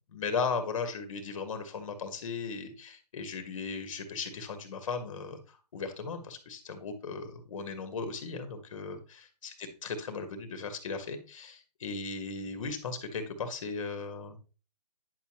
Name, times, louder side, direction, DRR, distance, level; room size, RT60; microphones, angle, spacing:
voice 1, 0.1-14.4, left 4 dB, 50° left, 7 dB, 1.8 m, -37 dB
10.0 x 7.1 x 3.1 m, 0.35 s
figure-of-eight pair, 145°, 21 cm